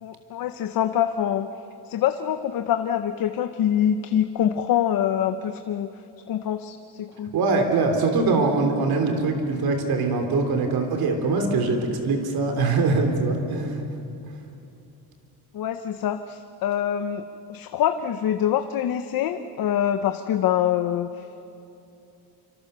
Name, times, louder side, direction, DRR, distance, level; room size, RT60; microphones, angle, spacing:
voice 1, 0.0-1.5 1.9-5.9 6.3-7.3 15.5-17.2 17.5-21.5, left 10 dB, 60° left, 8 dB, 0.9 m, -25 dB
voice 2, 7.3-13.8, right 3 dB, 65° right, 4 dB, 3.4 m, -23 dB
26.5 x 26.0 x 6.9 m, 2.8 s
cardioid pair, 155°, 40 cm